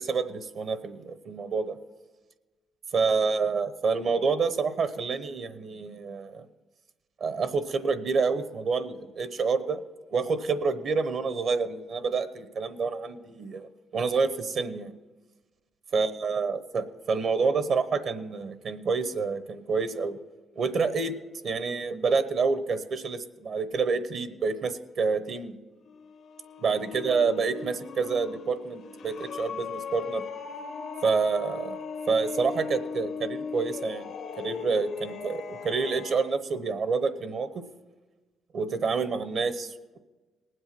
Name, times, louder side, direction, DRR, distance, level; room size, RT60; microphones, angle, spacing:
voice 1, 0.0-1.8 2.9-6.5 7.2-9.8 10.1-14.9 15.9-20.2 20.6-21.1 21.4-25.5 26.6-30.2 31.0-31.8 32.1-34.0 34.4-37.6 38.5-40.0, right 4 dB, 60° right, 12 dB, 0.9 m, -28 dB
sound 1, 25.8-36.3, left 6 dB, 70° left, 0.8 m, -38 dB
18.5 x 7.9 x 6.0 m, 1.2 s
cardioid pair, 90°, 0 cm